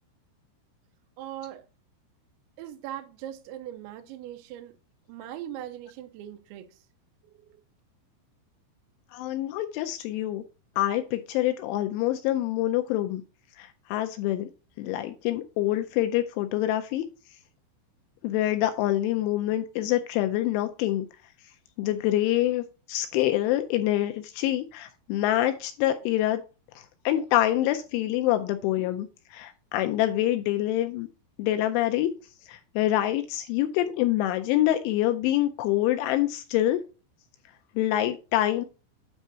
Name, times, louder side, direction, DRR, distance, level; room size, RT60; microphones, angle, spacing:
voice 1, 1.2-1.6 2.6-4.8 5.1-6.8 7.2-7.6, right 11 dB, 85° right, 2.7 m, -40 dB
voice 2, 9.1-10.4 10.8-13.2 13.6-14.5 14.8-17.0 18.2-21.1 21.8-26.4 26.8-31.1 31.4-32.1 32.5-36.8 37.8-38.7, left 14 dB, 85° left, 2.8 m, -26 dB
9.2 x 3.5 x 5.4 m
omnidirectional pair, 5.9 m